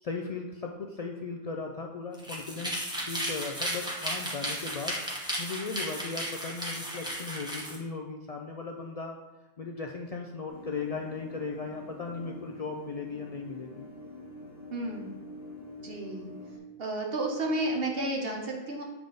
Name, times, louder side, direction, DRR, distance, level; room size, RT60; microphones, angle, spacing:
voice 1, 0.0-5.0 5.4-9.2 9.6-13.9, left 4 dB, 75° left, 2 dB, 0.3 m, -37 dB
sound 1, 2.1-7.8, equal, 5° right, 0.8 m, -34 dB
sound 2, 10.5-16.6, left 2 dB, 60° left, 1.1 m, -46 dB
voice 2, 14.7-15.1 15.8-16.3 16.8-18.8, right 1 dB, 60° right, 0 dB, 1.1 m, -31 dB
7.0 x 3.6 x 3.8 m, 1.1 s
omnidirectional pair, 1.2 m